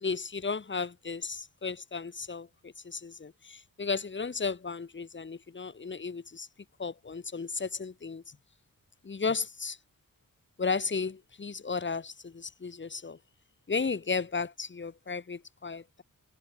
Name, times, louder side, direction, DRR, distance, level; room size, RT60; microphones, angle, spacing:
voice 1, 0.0-6.5 6.8-8.4 9.0-9.8 10.6-13.2 13.7-16.0, left 4 dB, 35° left, 1.8 m, -34 dB
wide cardioid pair, 115°, 35 cm